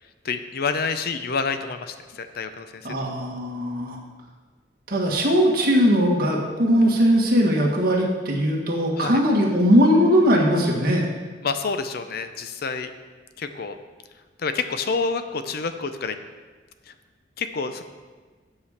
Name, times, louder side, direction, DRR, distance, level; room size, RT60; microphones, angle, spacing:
voice 1, 0.2-2.9 9.0-9.2 11.4-12.9 13.4-13.8 14.4-16.2 16.9-17.0 17.4-17.8, left 4 dB, 55° left, 9 dB, 0.5 m, -28 dB
voice 2, 2.8-4.0 4.9-11.0, equal, 55° right, -2 dB, 1.7 m, -19 dB
8.3 x 4.9 x 7.1 m, 1.4 s
head